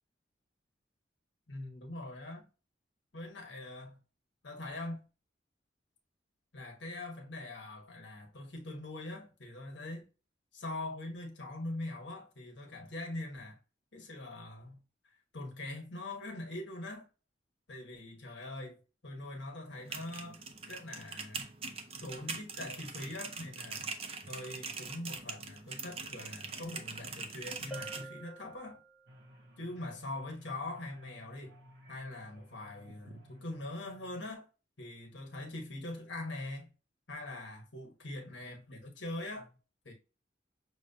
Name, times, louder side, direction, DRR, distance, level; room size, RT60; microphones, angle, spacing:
voice 1, 1.5-2.5 3.1-4.0 4.4-5.0 6.5-10.1 10.5-13.6 13.9-14.8 15.3-17.1 17.7-20.4 20.7-21.4 22.0-23.9 24.3-28.8 29.6-31.6 31.9-34.5 34.8-36.7 37.1-39.5 39.8-39.9, left 2 dB, 80° left, 1.2 m, -42 dB
sound 1, 19.7-28.0, right 4 dB, 30° right, 0.5 m, -43 dB
Bell, 27.7-29.3, right 2 dB, 5° right, 0.9 m, -48 dB
sound 2, 29.1-34.3, equal, 75° right, 0.8 m, -57 dB
6.1 x 2.2 x 2.7 m
head